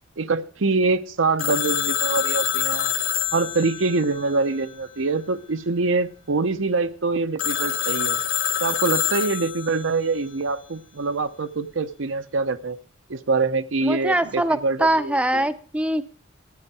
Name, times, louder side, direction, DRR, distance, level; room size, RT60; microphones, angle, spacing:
voice 1, 0.2-2.9 3.3-8.2 8.6-12.8 13.1-15.5, right 3 dB, 80° right, 0.7 m, -24 dB
Telephone, 1.4-5.0 7.4-9.9, left 10 dB, 80° left, 1.1 m, -26 dB
voice 2, 13.8-16.0, right 1 dB, 5° right, 0.6 m, -23 dB
13.0 x 10.0 x 4.7 m
head